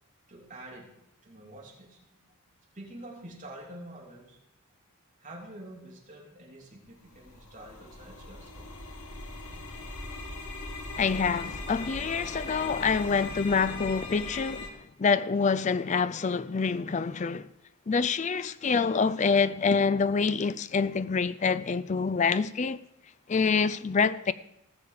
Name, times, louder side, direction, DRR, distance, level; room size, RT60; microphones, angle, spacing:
voice 1, 0.3-2.2 2.7-4.4 5.2-8.7, right 1 dB, 35° right, 3.2 m, -47 dB
sound 1, 6.9-14.7, left 2 dB, 85° left, 1.6 m, -40 dB
voice 2, 11.0-17.5 17.9-22.8 23.3-24.3, left 5 dB, 35° left, 0.4 m, -26 dB
18.5 x 7.0 x 5.0 m
head